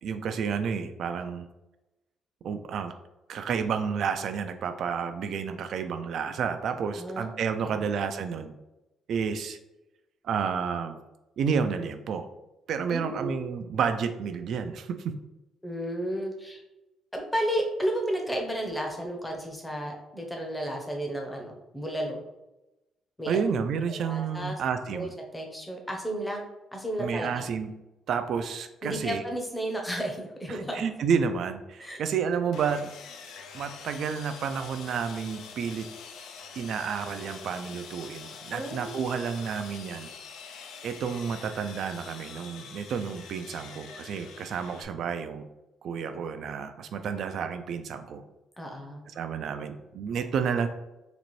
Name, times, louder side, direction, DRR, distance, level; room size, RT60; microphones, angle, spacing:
voice 1, 0.0-1.5 2.4-2.9 3.3-8.5 9.1-9.6 10.2-11.0 11.4-12.3 12.7-15.1 23.3-25.1 27.0-27.7 28.1-29.2 30.5-32.9 33.5-35.9 36.6-40.1 40.5-45.4 45.8-48.2 49.2-50.7, right 6 dB, 55° right, 8 dB, 0.3 m, -30 dB
voice 2, 7.0-7.3 7.6-7.8 12.9-13.3 15.6-16.6 17.1-22.2 23.2-23.4 23.9-24.6 24.9-27.5 28.8-30.7 31.8-32.0 38.5-38.9 48.6-49.0, equal, 10° left, 1 dB, 0.7 m, -33 dB
Sawing, 32.5-44.8, left 6 dB, 75° left, 0.4 m, -45 dB
4.0 x 2.5 x 3.0 m, 0.97 s
cardioid pair, 145°, 0 cm